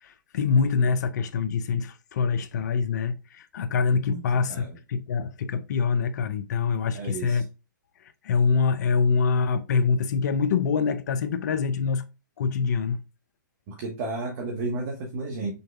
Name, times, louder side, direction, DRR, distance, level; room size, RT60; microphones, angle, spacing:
voice 1, 0.0-7.5 8.0-12.0 12.4-13.0, left 5 dB, 60° left, 0.5 m, -25 dB
voice 2, 6.9-7.4 13.7-15.5, right 3 dB, 40° right, 1.2 m, -32 dB
5.4 x 3.7 x 2.3 m
hypercardioid pair, 135°, 11 cm